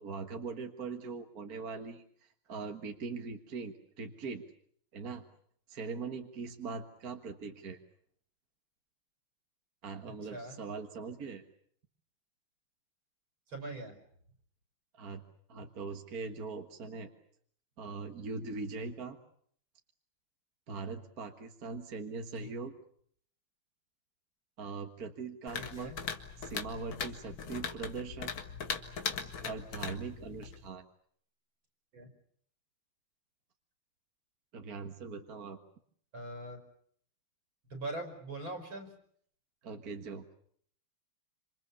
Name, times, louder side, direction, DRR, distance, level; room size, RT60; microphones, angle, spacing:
voice 1, 0.0-4.4 4.9-5.2 5.7-7.8 9.8-11.4 14.9-15.2 15.5-17.1 17.8-19.2 20.7-22.7 24.6-25.9 26.4-28.3 29.4-30.9 34.5-35.6 39.6-40.4, right 4 dB, 45° right, 5 dB, 1.9 m, -41 dB
voice 2, 13.5-13.9 22.4-22.5 25.6-26.0 31.9-32.1 36.1-36.6 37.7-38.9, right 2 dB, 70° right, 5 dB, 5.7 m, -41 dB
sound 1, 25.5-30.7, left 6 dB, 70° left, 2.5 m, -40 dB
27.5 x 27.0 x 7.0 m, 0.64 s
omnidirectional pair, 2.3 m